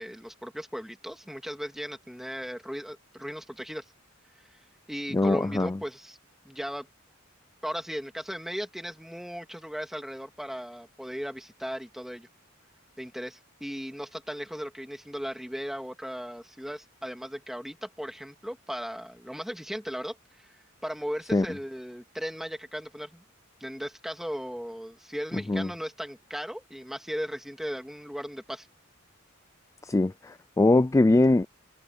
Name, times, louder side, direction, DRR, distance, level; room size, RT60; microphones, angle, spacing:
voice 1, 0.0-3.8 4.9-6.2 6.4-6.9 7.6-12.3 13.0-20.5 20.8-23.2 23.6-28.7, equal, ahead, 2.4 m, -37 dB
voice 2, 5.1-5.8 21.3-21.5 25.5-25.7 29.8-31.5, left 2 dB, 15° left, 0.3 m, -22 dB
head